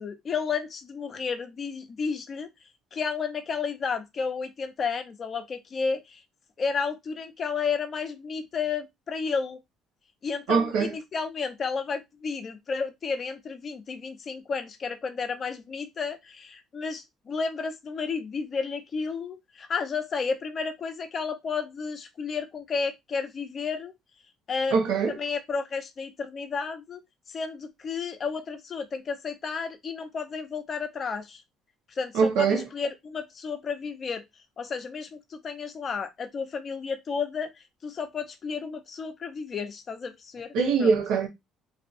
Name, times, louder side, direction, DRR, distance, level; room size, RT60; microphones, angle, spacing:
voice 1, 0.0-2.5 2.9-6.2 6.6-9.6 10.2-23.9 24.5-24.8 25.1-27.0 27.3-31.4 32.0-34.3 34.6-37.5 37.8-40.5 40.8-40.9, left 5 dB, 40° left, 0.6 m, -32 dB
voice 2, 10.5-10.9 24.7-25.2 32.1-32.7 40.5-41.3, right 5 dB, 80° right, 0.9 m, -23 dB
2.7 x 2.5 x 2.5 m
cardioid pair, 100°, 0 cm